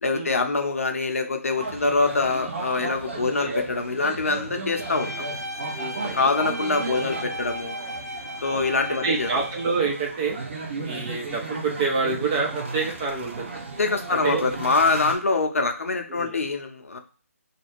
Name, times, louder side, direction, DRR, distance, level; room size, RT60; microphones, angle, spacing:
voice 1, 0.0-5.2 6.1-7.8 8.4-9.3 13.8-17.0, left 3 dB, 60° left, 5 dB, 0.6 m, -24 dB
sound 1, 1.6-15.2, right 3 dB, 45° right, 0.8 m, -35 dB
voice 2, 3.1-3.6 5.7-6.3 6.9-7.0 8.5-8.7 9.0-10.4 10.8-13.6 14.1-14.4 16.1-16.3, right 4 dB, 15° right, 0 dB, 0.4 m, -28 dB
Bowed string instrument, 4.7-10.0, equal, 85° right, 0.4 m, -36 dB
2.5 x 2.2 x 3.1 m, 0.39 s
figure-of-eight pair, 145°, 8 cm